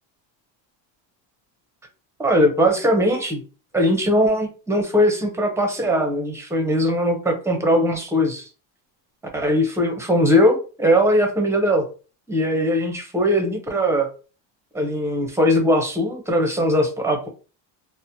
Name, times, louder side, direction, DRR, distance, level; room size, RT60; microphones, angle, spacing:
voice 1, 2.2-3.4 3.7-8.5 9.3-11.8 12.3-14.1 14.7-17.3, equal, 5° right, 3 dB, 0.5 m, -20 dB
4.1 x 2.1 x 2.6 m, 0.34 s
cardioid pair, 140°, 48 cm